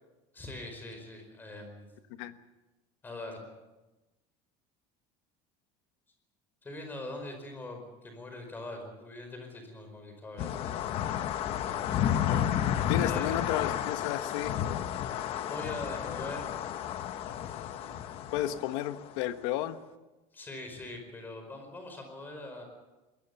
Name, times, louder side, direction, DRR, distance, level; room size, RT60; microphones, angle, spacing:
voice 1, 0.3-1.9 3.0-3.4 6.6-11.3 11.6-12.0 13.0-13.4 15.5-16.4 17.3-18.0 20.3-22.6, left 2 dB, 15° left, 5 dB, 4.9 m, -42 dB
sound 1, 10.4-19.2, left 10 dB, 40° left, 1.0 m, -32 dB
voice 2, 12.9-14.8 18.3-19.8, left 12 dB, 85° left, 10 dB, 1.4 m, -33 dB
23.0 x 19.5 x 7.0 m, 1.1 s
cardioid pair, 180°, 15 cm